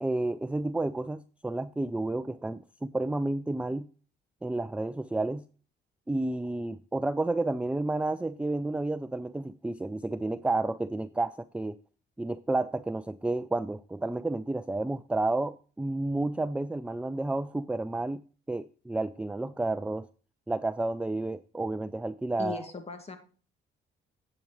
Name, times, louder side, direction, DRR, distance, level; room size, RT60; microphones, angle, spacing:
voice 1, 0.0-2.6 2.9-3.9 4.4-5.4 6.1-11.8 12.2-18.2 18.5-20.1 20.5-22.7, right 2 dB, 5° right, 13 dB, 0.4 m, -31 dB
voice 2, 22.4-23.2, left 4 dB, 30° left, 8 dB, 2.0 m, -38 dB
10.5 x 8.8 x 3.1 m, 0.39 s
cardioid pair, 90°, 20 cm